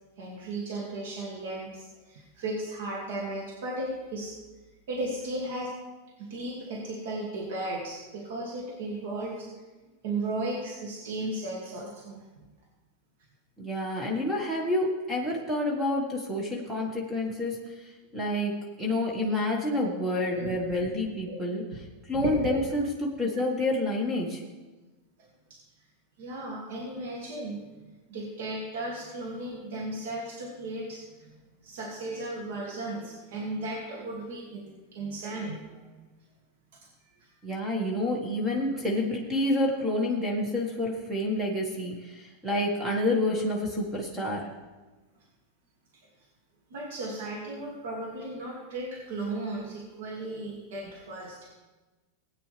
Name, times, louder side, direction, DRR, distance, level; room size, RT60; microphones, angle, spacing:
voice 1, 0.2-4.3 4.9-5.7 6.2-9.5 10.0-12.2 20.3-20.8 21.3-21.4 22.1-22.6 26.2-27.6 28.1-31.3 31.6-35.8 46.7-51.5, right 2 dB, 75° right, -3 dB, 2.4 m, -35 dB
voice 2, 13.6-21.6 22.1-24.4 37.4-44.5, left 1 dB, 10° right, -1 dB, 1.8 m, -28 dB
17.0 x 9.1 x 3.5 m, 1.2 s
supercardioid pair, 130°, 0 cm